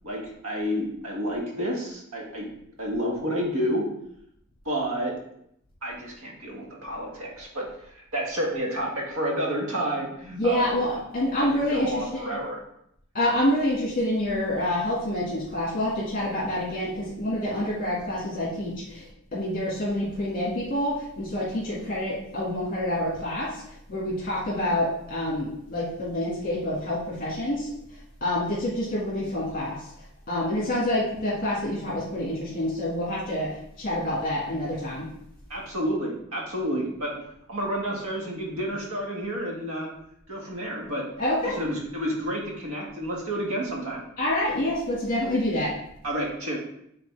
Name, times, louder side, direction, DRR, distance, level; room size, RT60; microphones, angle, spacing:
voice 1, 0.0-2.5 2.8-3.8 4.6-5.1 5.8-10.6 11.4-12.6 35.5-37.2 37.5-39.9 40.3-41.0 41.4-44.0 46.0-46.6, equal, 85° right, -2 dB, 1.7 m, -30 dB
voice 2, 10.2-12.0 13.1-23.6 23.9-27.7 28.2-29.8 30.3-35.1 41.2-41.6 44.2-45.7, left 1 dB, 45° left, -7 dB, 2.1 m, -27 dB
7.4 x 4.0 x 3.4 m, 0.74 s
head